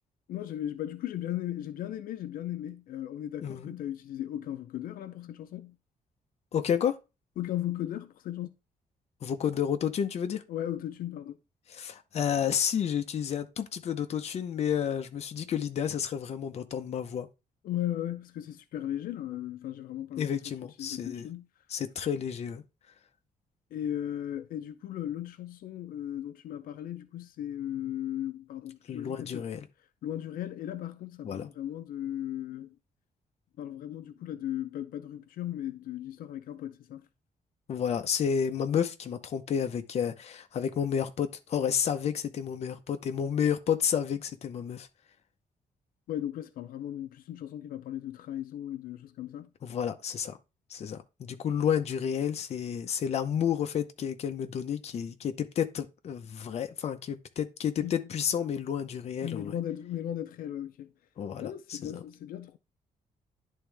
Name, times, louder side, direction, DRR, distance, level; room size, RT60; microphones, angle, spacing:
voice 1, 0.3-5.8 7.4-8.5 10.5-11.4 17.6-20.5 20.8-21.5 23.7-29.4 30.0-32.8 33.6-37.1 46.1-49.5 57.8-58.0 59.2-60.9 61.4-62.6, left 11 dB, 90° left, 0.6 m, -36 dB
voice 2, 3.4-3.8 6.5-7.0 9.2-10.4 11.7-17.3 20.2-21.3 21.7-22.6 28.9-29.7 31.2-31.5 37.7-44.9 49.6-50.4 50.7-59.5 61.2-62.0, left 8 dB, 50° left, 0.8 m, -31 dB
11.0 x 3.6 x 3.4 m
cardioid pair, 165°, 14 cm